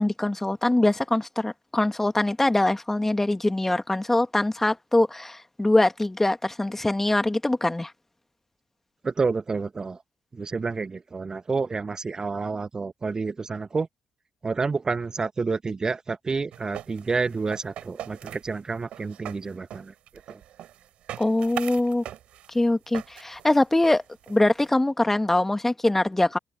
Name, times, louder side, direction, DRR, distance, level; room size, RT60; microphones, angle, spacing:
voice 1, 0.0-7.9 21.2-22.0 22.5-24.0 24.3-26.4, left 2 dB, 15° left, 2.4 m, -23 dB
voice 2, 9.0-10.0 10.3-13.9 14.4-19.9 20.3-20.4, right 4 dB, 30° right, 1.2 m, -29 dB
sound 1, 16.5-24.7, right 12 dB, 60° right, 6.5 m, -41 dB
figure-of-eight pair, 40°, 2 cm